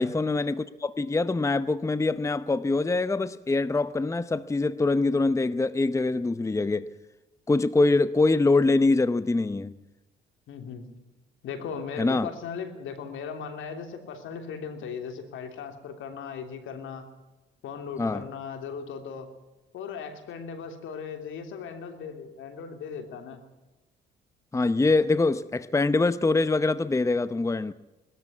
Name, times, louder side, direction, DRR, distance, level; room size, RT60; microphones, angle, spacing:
voice 1, 0.0-6.9 7.5-9.8 12.0-12.3 18.0-18.2 24.5-27.7, left 3 dB, 15° left, 0.7 m, -24 dB
voice 2, 10.5-10.8 11.4-17.1 17.6-19.3 19.7-23.4, left 6 dB, 80° left, 3.2 m, -37 dB
21.0 x 13.5 x 9.6 m
cardioid pair, 90°, 20 cm